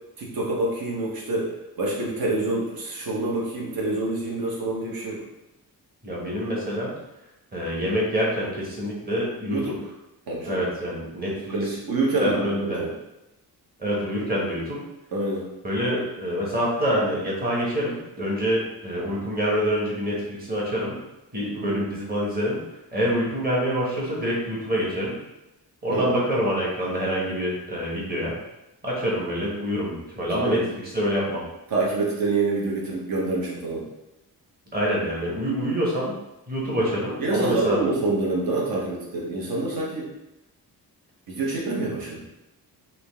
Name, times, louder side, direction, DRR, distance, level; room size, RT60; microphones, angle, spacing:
voice 1, 0.2-1.5 1.8-5.2 9.5-9.8 10.3-10.6 11.5-12.9 15.1-15.5 21.5-21.8 25.9-26.1 30.4-30.6 31.7-33.8 37.2-40.1 41.3-42.2, right 2 dB, 65° right, -3 dB, 1.2 m, -26 dB
voice 2, 6.0-6.9 7.5-9.6 10.4-11.6 12.2-12.8 13.8-14.8 15.6-21.0 21.3-22.6 22.9-25.2 25.8-28.3 28.8-31.4 34.7-36.1 36.5-37.8, equal, 25° right, -5 dB, 1.2 m, -26 dB
3.8 x 2.8 x 3.5 m, 0.94 s
wide cardioid pair, 155°, 38 cm